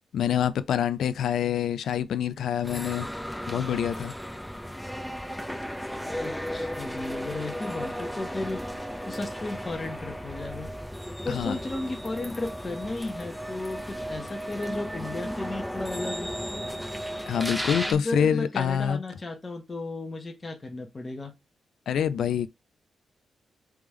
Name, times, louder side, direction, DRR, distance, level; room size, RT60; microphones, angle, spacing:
voice 1, 0.1-3.1 3.5-4.1 11.3-11.6 17.3-19.0 21.9-22.5, left 9 dB, 85° left, 0.3 m, -26 dB
sound 1, 2.6-17.9, equal, 5° left, 0.8 m, -35 dB
voice 2, 6.2-8.6 9.1-10.7 11.2-16.3 17.9-21.3, left 2 dB, 30° left, 1.0 m, -34 dB
3.5 x 3.4 x 3.1 m
cardioid pair, 110°, 0 cm